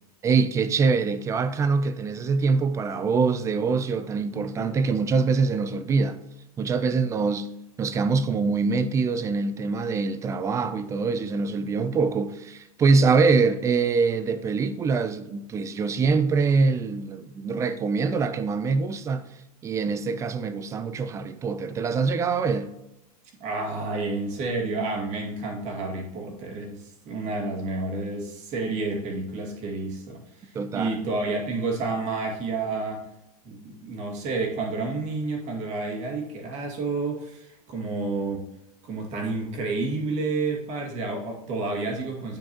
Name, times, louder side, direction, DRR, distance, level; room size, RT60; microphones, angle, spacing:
voice 1, 0.2-6.2 6.6-7.5 7.8-19.2 19.6-22.7 30.5-31.0, right 4 dB, 15° right, 0.4 m, -24 dB
voice 2, 23.4-33.0 33.4-38.5 38.8-42.4, right 3 dB, 35° right, 2.1 m, -30 dB
10.5 x 4.5 x 2.9 m
supercardioid pair, 145°, 19 cm